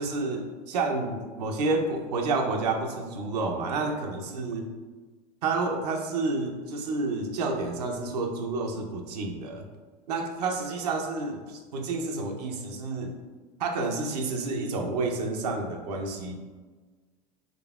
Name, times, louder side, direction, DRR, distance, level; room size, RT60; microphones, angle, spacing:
voice 1, 0.0-4.7 5.4-9.6 10.1-13.1 13.6-16.3, right 3 dB, 85° right, 3 dB, 0.6 m, -30 dB
3.8 x 3.3 x 2.4 m, 1.4 s
hypercardioid pair, 95°, 20 cm